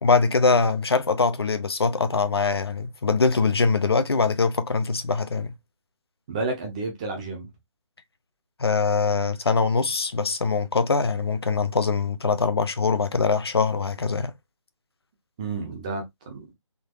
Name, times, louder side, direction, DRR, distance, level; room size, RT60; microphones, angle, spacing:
voice 1, 0.0-5.5 8.6-14.3, left 4 dB, 50° left, 0.6 m, -23 dB
voice 2, 6.3-7.5 15.4-16.5, right 3 dB, 15° right, 0.7 m, -31 dB
3.7 x 2.7 x 2.4 m
figure-of-eight pair, 155°, 17 cm